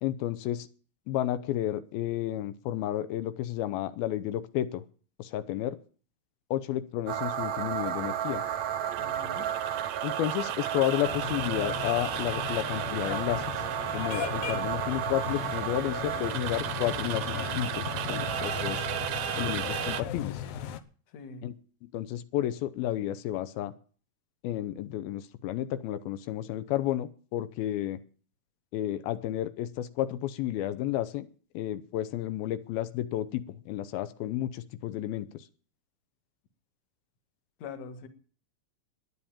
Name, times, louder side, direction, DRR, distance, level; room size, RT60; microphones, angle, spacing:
voice 1, 0.0-0.7 1.1-4.8 5.2-5.8 6.5-8.4 10.0-13.4 13.9-18.9 19.3-20.4 21.4-21.5 21.9-23.7 24.4-28.0 28.7-31.3 31.5-35.3, left 13 dB, 90° left, 2.7 m, -31 dB
sound 1, 7.1-20.0, right 10 dB, 75° right, 1.6 m, -32 dB
voice 2, 9.0-9.5 21.1-21.5 37.6-38.1, left 5 dB, 55° left, 2.4 m, -43 dB
sound 2, 11.0-20.8, left 9 dB, 70° left, 2.1 m, -37 dB
11.0 x 10.0 x 8.7 m
omnidirectional pair, 4.2 m